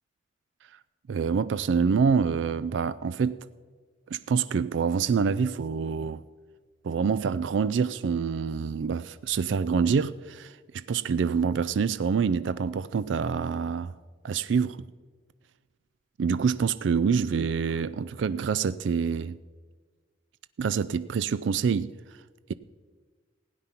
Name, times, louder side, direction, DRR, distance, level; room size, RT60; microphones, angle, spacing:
voice 1, 1.1-3.4 4.1-6.2 6.8-13.9 14.2-14.8 16.2-19.4 20.6-21.9, right 6 dB, 80° right, 0.4 m, -26 dB
16.5 x 9.5 x 5.8 m
head